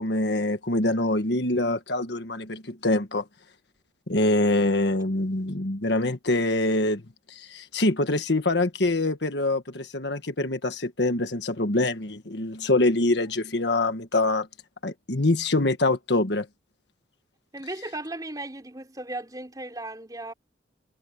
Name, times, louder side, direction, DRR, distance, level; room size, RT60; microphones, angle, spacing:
voice 1, 0.0-3.2 4.1-7.0 7.3-14.5 14.8-16.5, left 2 dB, 65° left, 1.5 m, -25 dB
voice 2, 17.5-20.3, right 2 dB, 20° right, 3.6 m, -36 dB
head